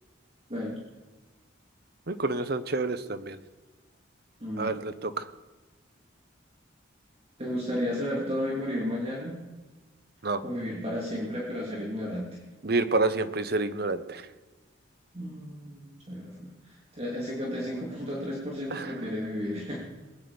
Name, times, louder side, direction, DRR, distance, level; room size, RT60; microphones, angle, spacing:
voice 1, 2.1-3.4 4.6-5.3 10.2-10.4 12.6-14.3 18.7-18.9, right 3 dB, 50° right, 11 dB, 0.9 m, -28 dB
voice 2, 4.4-4.7 7.4-9.3 10.4-12.3 15.1-19.9, equal, 30° right, -5 dB, 3.1 m, -33 dB
21.0 x 9.6 x 5.2 m, 1.2 s
head